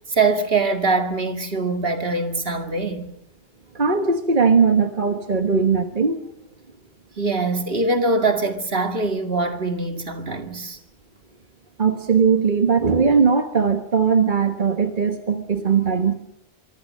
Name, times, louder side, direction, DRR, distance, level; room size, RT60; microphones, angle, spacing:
voice 1, 0.1-3.1 7.2-10.8, right 3 dB, 65° right, 2.4 m, -23 dB
voice 2, 3.7-6.2 11.8-16.1, right 5 dB, 50° right, 1.5 m, -19 dB
24.5 x 24.0 x 6.5 m
omnidirectional pair, 1.1 m